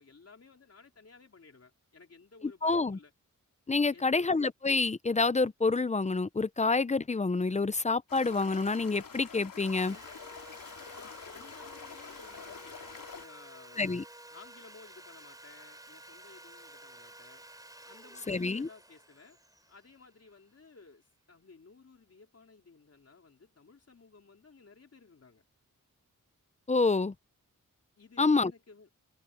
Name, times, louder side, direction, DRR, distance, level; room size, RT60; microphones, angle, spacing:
voice 1, 0.0-3.1 3.9-4.4 10.9-14.0 14.3-17.4 17.8-19.4 19.7-25.4 28.0-28.9, left 4 dB, 50° left, 3.7 m, -56 dB
voice 2, 2.6-3.0 3.7-10.0 13.8-14.0 18.3-18.7 26.7-27.1 28.2-28.5, left 3 dB, 20° left, 0.5 m, -27 dB
sound 1, 8.1-13.3, left 6 dB, 90° left, 2.8 m, -47 dB
Sawing, 9.6-20.6, right 1 dB, 10° right, 3.5 m, -52 dB
wide cardioid pair, 135°, 33 cm